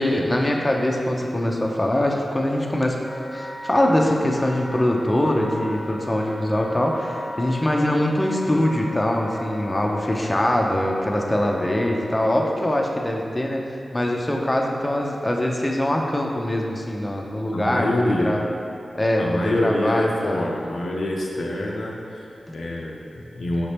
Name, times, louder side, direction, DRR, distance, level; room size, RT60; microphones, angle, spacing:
voice 1, 0.0-3.0 3.3-13.6 13.9-18.4 18.9-20.4 22.5-22.6, left 1 dB, 25° left, 0 dB, 0.5 m, -23 dB
Wind instrument woodwind instrument, 3.0-12.3, left 1 dB, 20° right, 0.8 m, -37 dB
voice 2, 17.5-18.3 19.2-22.3 22.5-23.7, left 1 dB, 85° left, -2 dB, 0.5 m, -26 dB
5.1 x 2.8 x 3.3 m, 2.6 s
cardioid pair, 55°, 0 cm